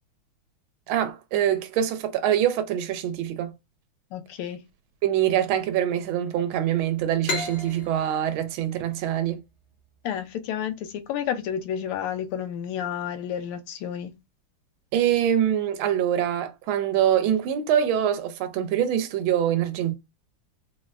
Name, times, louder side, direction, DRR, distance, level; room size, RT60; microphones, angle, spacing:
voice 1, 0.9-3.5 5.0-9.4 14.9-19.9, right 10 dB, 75° right, 1.3 m, -24 dB
voice 2, 4.1-4.6 10.0-14.1, left 9 dB, 85° left, 1.5 m, -31 dB
sound 1, 7.2-10.7, left 3 dB, 55° left, 0.7 m, -35 dB
3.9 x 2.1 x 2.3 m
omnidirectional pair, 2.4 m